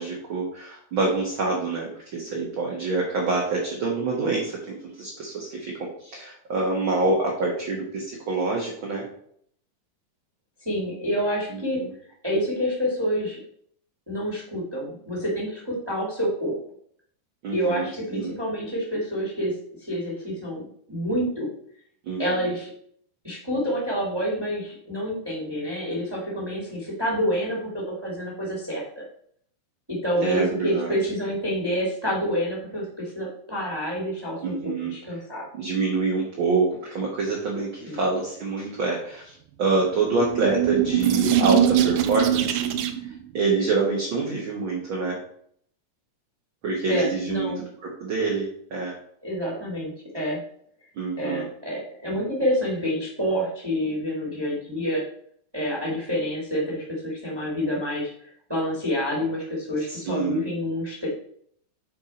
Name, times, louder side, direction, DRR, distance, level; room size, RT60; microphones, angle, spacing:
voice 1, 0.0-9.1 11.5-11.9 17.4-18.3 22.1-22.4 30.2-30.9 34.4-34.9 35.5-42.7 43.3-45.2 46.6-49.0 51.0-51.5 59.9-60.4, right 3 dB, 50° right, -3 dB, 1.7 m, -26 dB
voice 2, 10.6-11.8 12.2-13.4 14.1-16.5 17.5-19.5 19.9-21.5 22.2-22.7 23.2-29.0 29.9-34.4 34.9-35.5 37.9-38.0 46.9-47.6 49.2-50.4 51.2-55.0 55.5-61.1, equal, 10° right, -3 dB, 1.8 m, -28 dB
sound 1, 40.0-43.2, right 11 dB, 80° right, 2.1 m, -22 dB
8.3 x 4.7 x 4.2 m, 0.63 s
omnidirectional pair, 3.6 m